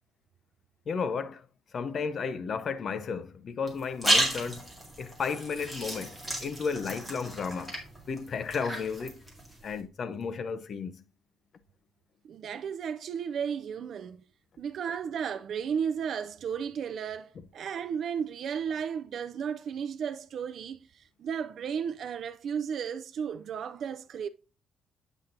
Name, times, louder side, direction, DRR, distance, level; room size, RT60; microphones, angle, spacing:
voice 1, 0.9-1.5 1.7-7.8 8.1-9.2 9.6-11.0, left 5 dB, 40° left, 0.5 m, -33 dB
sound 1, 3.7-9.8, right 1 dB, ahead, 2.0 m, -33 dB
voice 2, 12.3-14.2 14.6-24.3, right 7 dB, 50° right, 0.3 m, -34 dB
8.0 x 5.7 x 2.6 m
cardioid pair, 155°, 0 cm